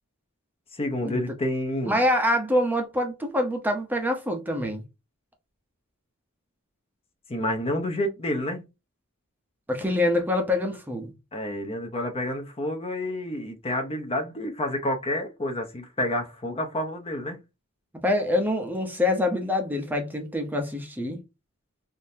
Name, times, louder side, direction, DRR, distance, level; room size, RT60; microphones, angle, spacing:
voice 1, 0.7-2.0 7.3-8.6 11.3-17.4, left 1 dB, 30° left, 0.7 m, -29 dB
voice 2, 1.8-4.8 9.7-11.1 18.0-21.2, left 1 dB, 10° right, 0.6 m, -25 dB
3.6 x 2.6 x 2.7 m
head